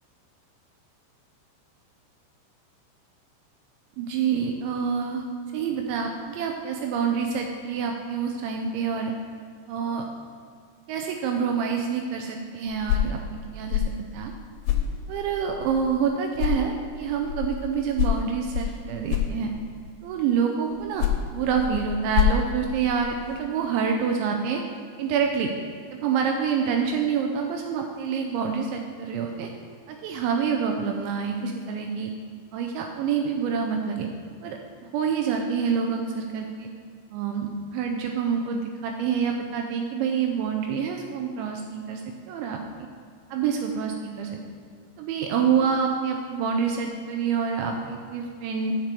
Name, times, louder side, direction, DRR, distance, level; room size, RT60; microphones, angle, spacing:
voice 1, 4.0-5.3 5.5-9.1 9.7-10.0 10.9-14.3 15.1-19.5 20.0-21.1 21.3-24.6 25.0-25.5 26.0-29.5 29.9-32.1 32.5-34.1 34.4-34.6 34.9-36.7 37.1-42.0 42.3-42.6 43.3-44.3 45.0-48.8, right 6 dB, 80° right, 3 dB, 2.9 m, -27 dB
sound 1, 12.7-16.1 16.4-19.9 20.7-23.4, left 9 dB, 80° left, 3.0 m, -28 dB
7.4 x 6.4 x 6.8 m, 2.2 s
omnidirectional pair, 5.3 m